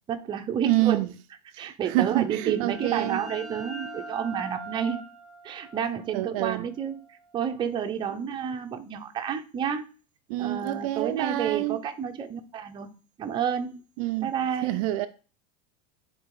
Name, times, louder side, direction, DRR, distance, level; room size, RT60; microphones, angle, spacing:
voice 1, 0.1-1.0 1.6-5.0 5.4-9.8 10.4-12.9 13.2-13.8 14.2-14.8, right 8 dB, 20° right, 0.8 m, -30 dB
voice 2, 0.6-1.1 1.5-3.2 6.1-6.7 10.3-11.8 14.0-14.3 14.6-15.1, right 15 dB, 60° right, 0.6 m, -27 dB
sound 1, 2.0-7.5, right 2 dB, ahead, 1.0 m, -43 dB
10.0 x 4.1 x 4.8 m
supercardioid pair, 155°, 21 cm